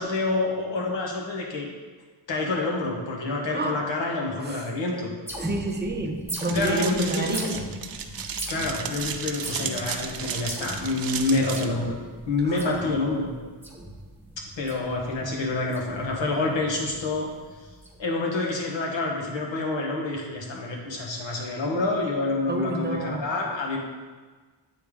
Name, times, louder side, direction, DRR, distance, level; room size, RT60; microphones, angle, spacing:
voice 1, 0.0-1.7 2.3-5.1 6.5-7.5 8.5-12.0 12.3-13.3 14.6-17.3 18.0-23.8, left 2 dB, 85° left, -1 dB, 1.2 m, -27 dB
voice 2, 3.5-3.8 4.4-4.6 5.4-7.5 12.4-12.7 22.5-23.2, right 2 dB, 25° right, 2 dB, 0.7 m, -29 dB
sound 1, 5.3-18.0, right 1 dB, 5° right, 1.0 m, -39 dB
sound 2, 6.3-11.6, right 7 dB, 55° right, 0.5 m, -34 dB
8.9 x 3.3 x 3.6 m, 1.4 s
wide cardioid pair, 110°, 43 cm